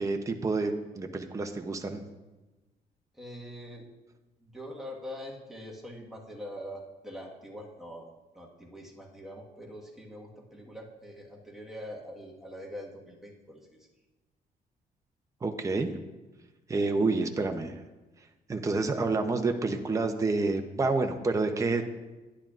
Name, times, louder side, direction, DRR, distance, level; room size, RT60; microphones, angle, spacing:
voice 1, 0.0-2.0 15.4-15.9 16.7-17.7 18.5-21.8, right 3 dB, 20° right, 5 dB, 0.6 m, -28 dB
voice 2, 3.1-3.9 4.4-8.1 8.3-13.9, equal, ahead, -3 dB, 1.5 m, -43 dB
11.0 x 10.5 x 2.5 m, 1.1 s
cardioid pair, 130°, 17 cm